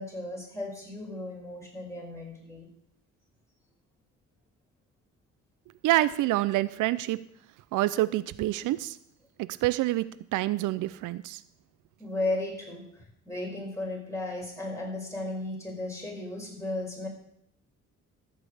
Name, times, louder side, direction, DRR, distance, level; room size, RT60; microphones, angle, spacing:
voice 1, 0.0-2.7 12.0-17.1, left 2 dB, 10° left, -1 dB, 5.1 m, -35 dB
voice 2, 5.8-7.2 7.7-9.0 9.4-11.4, right 16 dB, 90° right, 16 dB, 0.5 m, -27 dB
14.0 x 5.5 x 7.9 m, 0.70 s
cardioid pair, 90°, 30 cm